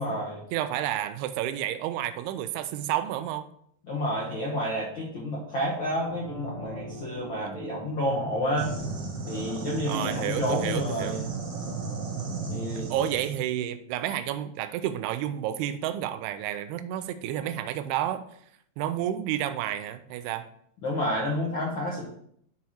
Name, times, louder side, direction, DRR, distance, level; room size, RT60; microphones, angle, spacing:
voice 1, 0.0-0.4 3.8-8.7 9.3-11.2 12.4-12.9 20.8-22.1, equal, 75° left, -5 dB, 1.1 m, -30 dB
voice 2, 0.5-3.5 7.4-7.5 9.5-11.3 12.8-18.2 18.8-20.5, right 11 dB, 90° right, 10 dB, 2.6 m, -31 dB
sound 1, 5.7-12.6 12.9-13.0, right 1 dB, ahead, 1.1 m, -43 dB
sound 2, 8.6-13.4, right 4 dB, 65° right, 1.1 m, -34 dB
6.9 x 4.3 x 6.3 m, 0.66 s
omnidirectional pair, 4.5 m